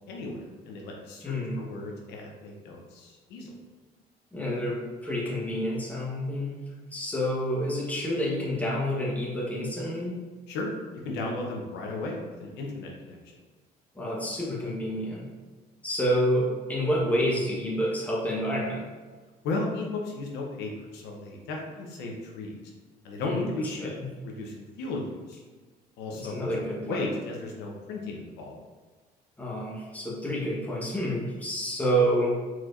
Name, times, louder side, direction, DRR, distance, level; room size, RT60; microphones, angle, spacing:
voice 1, 0.1-3.5 10.5-10.7 11.0-13.2 19.4-22.6 23.0-23.9 24.2-25.4 26.0-26.5 26.8-28.6, left 2 dB, 90° left, -1 dB, 0.9 m, -35 dB
voice 2, 1.2-1.6 4.3-10.2 13.9-15.3 15.8-18.8 23.2-23.5 23.8-24.1 26.1-27.0 29.4-32.4, equal, 10° left, -4 dB, 1.2 m, -28 dB
4.5 x 4.4 x 2.6 m, 1.4 s
cardioid pair, 110°, 17 cm